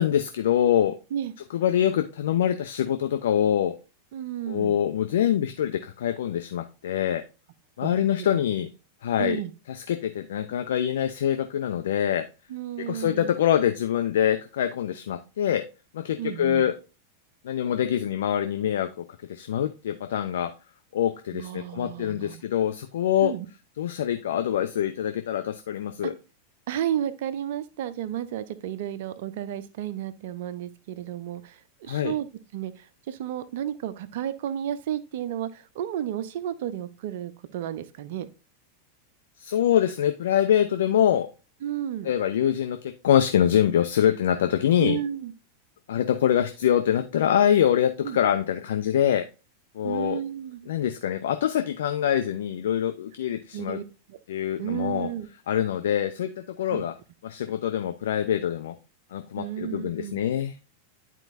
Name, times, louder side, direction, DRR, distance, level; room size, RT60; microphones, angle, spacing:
voice 1, 0.0-0.9 1.5-3.7 4.5-7.2 7.8-8.7 9.0-9.4 9.7-12.3 12.8-15.6 15.9-16.7 17.4-18.9 19.3-20.5 20.9-23.3 23.8-26.2 31.9-32.1 39.4-41.3 42.0-45.0 45.9-49.2 49.7-50.2 50.7-53.8 54.3-55.1 55.5-56.9 57.2-58.7 59.1-60.5, left 10 dB, 60° left, 8 dB, 0.5 m, -24 dB
voice 2, 4.1-4.8 7.8-8.3 9.2-9.5 12.5-13.3 16.2-16.7 21.3-22.4 23.2-23.5 26.0-26.1 26.7-32.3 32.5-38.3 41.6-42.1 44.8-45.3 48.0-48.2 49.8-50.7 53.5-53.8 54.1-54.2 54.6-55.3 56.7-56.9 59.4-60.2, right 11 dB, 50° right, 13 dB, 0.6 m, -32 dB
10.5 x 4.5 x 2.6 m, 0.32 s
figure-of-eight pair, 90°, 0 cm